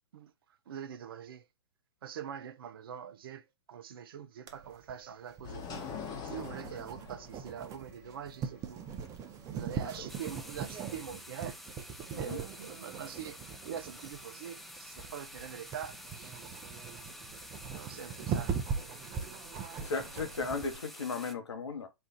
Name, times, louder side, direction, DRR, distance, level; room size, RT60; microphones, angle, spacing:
voice 1, 0.7-1.4 2.0-8.9 9.5-11.6 12.2-13.4 13.7-16.4 17.7-19.0 19.6-19.8, right 8 dB, 55° right, 0.6 m, -44 dB
sound 1, 4.5-20.8, right 6 dB, 20° right, 0.8 m, -41 dB
sound 2, 5.4-10.7, left 6 dB, 25° left, 0.9 m, -45 dB
voice 2, 9.8-10.1 12.1-12.4 19.8-21.9, left 4 dB, 75° left, 1.1 m, -36 dB
sound 3, 10.1-21.3, left 1 dB, ahead, 0.4 m, -49 dB
4.4 x 2.5 x 4.0 m
figure-of-eight pair, 115°, 14 cm